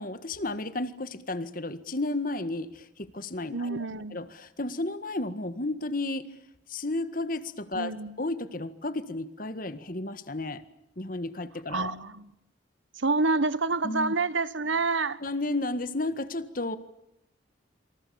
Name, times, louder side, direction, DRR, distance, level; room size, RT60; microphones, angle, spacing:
voice 1, 0.0-6.3 6.7-10.6 11.0-11.9 13.8-14.1 15.2-16.8, left 2 dB, 45° left, 1.7 m, -33 dB
voice 2, 3.5-4.2 7.7-8.1 11.7-12.3 13.0-15.2, right 3 dB, 75° right, 1.3 m, -28 dB
27.5 x 26.5 x 7.1 m
head